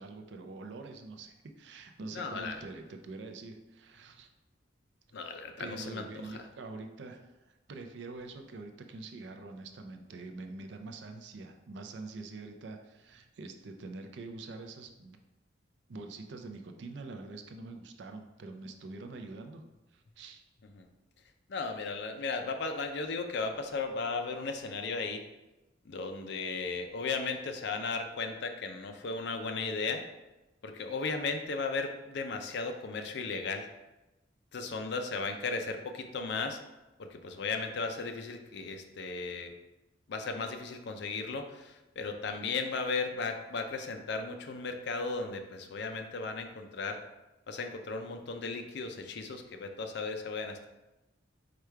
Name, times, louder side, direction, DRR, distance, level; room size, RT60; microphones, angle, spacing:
voice 1, 0.0-4.3 5.6-15.2 15.9-19.6 19.9-20.4, right 3 dB, 65° right, 5 dB, 0.4 m, -45 dB
voice 2, 2.1-2.6 5.1-6.5 20.8-20.9 21.5-25.2 25.8-30.0 30.6-33.7 34.5-36.6 37.0-39.5 40.1-47.0 47.5-50.7, left 4 dB, 65° left, 5 dB, 0.5 m, -36 dB
4.8 x 2.3 x 4.5 m, 1.0 s
head